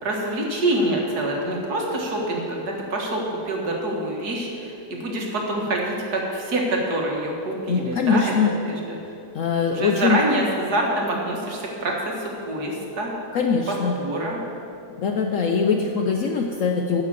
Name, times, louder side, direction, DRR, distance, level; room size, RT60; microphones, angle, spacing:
voice 1, 0.0-8.3 8.7-9.0 9.7-13.1 13.7-14.4, right 1 dB, 70° right, -1 dB, 2.1 m, -26 dB
voice 2, 7.7-8.5 9.3-10.2 13.3-13.9 15.0-17.0, left 5 dB, 65° left, 3 dB, 0.9 m, -22 dB
10.5 x 6.7 x 7.4 m, 2.9 s
omnidirectional pair, 1.7 m